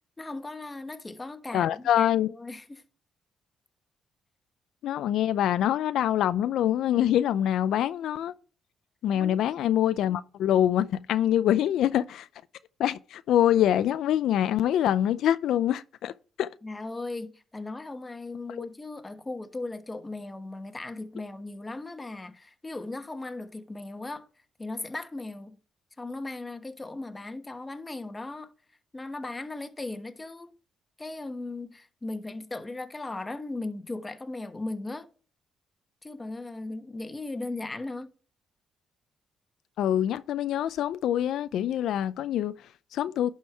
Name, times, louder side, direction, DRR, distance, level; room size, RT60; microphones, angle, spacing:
voice 1, 0.2-2.1 2.4-2.8 9.1-9.5 16.6-24.3 24.6-25.6 26.0-28.5 28.9-30.6 31.0-35.1 36.0-38.1, left 2 dB, 20° left, 1.2 m, -37 dB
voice 2, 1.5-2.3 4.8-8.3 9.0-12.3 12.8-16.1 16.4-16.5 18.6-18.7 39.8-43.3, left 11 dB, 80° left, 0.4 m, -25 dB
11.0 x 4.5 x 4.6 m
cardioid pair, 90°, 0 cm